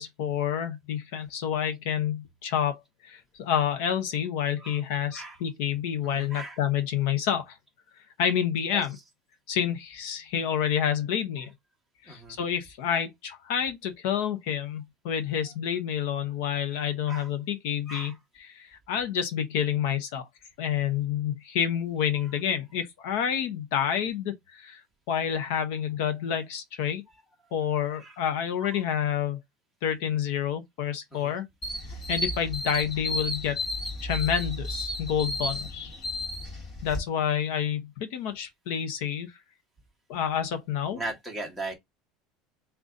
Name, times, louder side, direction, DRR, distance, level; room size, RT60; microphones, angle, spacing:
voice 1, 0.0-7.6 8.2-9.0 9.5-11.5 12.0-20.2 20.6-24.8 25.1-27.0 27.5-29.4 29.8-31.5 32.1-33.6 34.0-36.0 36.8-39.3 40.1-41.0, left 9 dB, 65° left, 0.7 m, -29 dB
voice 2, 6.0-6.6 8.7-8.9 12.1-12.4 16.7-16.8 17.1-17.3 17.9-18.2 27.9-28.2 28.6-28.8 31.1-31.3 40.9-41.7, right 2 dB, ahead, 1.0 m, -38 dB
sound 1, 31.6-37.0, left 1 dB, 20° left, 1.2 m, -33 dB
3.9 x 2.3 x 3.7 m
cardioid pair, 175°, 0 cm